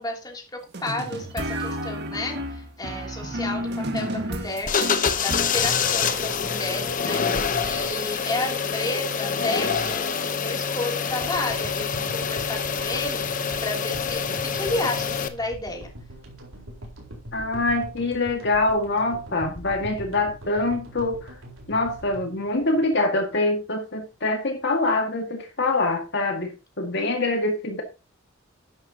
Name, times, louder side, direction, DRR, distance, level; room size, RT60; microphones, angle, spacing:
voice 1, 0.0-4.7 5.2-15.9, left 2 dB, 20° left, 1 dB, 3.0 m, -32 dB
sound 1, 0.7-5.6, equal, 55° right, 1.7 m, -31 dB
sound 2, 4.6-15.3, left 6 dB, 40° left, 1.0 m, -26 dB
sound 3, 11.2-23.5, equal, 80° right, 4.2 m, -42 dB
voice 2, 17.3-21.3 21.7-27.8, left 2 dB, 55° left, 3 dB, 2.0 m, -25 dB
12.0 x 10.5 x 2.9 m, 0.28 s
head